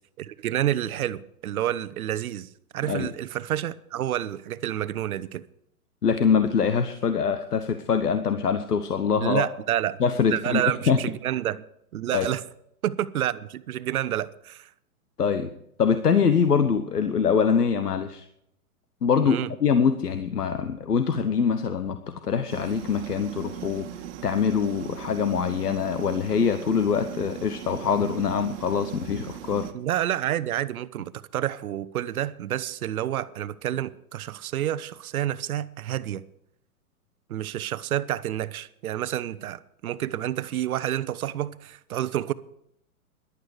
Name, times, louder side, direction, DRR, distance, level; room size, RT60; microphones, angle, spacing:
voice 1, 0.2-5.4 9.2-10.0 10.2-11.6 11.9-12.4 12.8-14.7 19.3-19.5 29.7-36.2 37.3-42.3, right 12 dB, 65° right, 0.9 m, -29 dB
voice 2, 6.0-9.5 10.0-11.0 12.1-12.3 15.2-15.5 15.8-18.2 19.0-23.9 24.2-29.7, left 6 dB, 90° left, 1.1 m, -24 dB
sound 1, 22.5-29.7, right 11 dB, 50° right, 1.5 m, -39 dB
15.0 x 11.5 x 4.9 m
hypercardioid pair, 115°, 45 cm